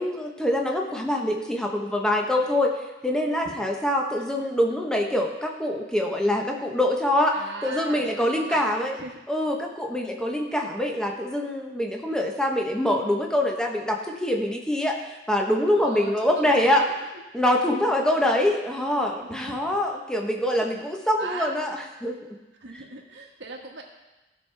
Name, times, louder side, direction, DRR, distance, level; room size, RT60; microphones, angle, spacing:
voice 1, 0.0-2.7 3.0-7.4 7.6-8.9 9.3-15.0 15.3-16.8 17.3-22.2, left 1 dB, 5° left, 1 dB, 1.1 m, -24 dB
voice 2, 7.3-9.2 15.8-16.9 17.7-17.8 19.2-19.6 20.6-20.8 21.2-21.5 22.6-23.8, right 3 dB, 75° right, 1 dB, 1.5 m, -38 dB
15.0 x 6.2 x 3.4 m, 1.1 s
head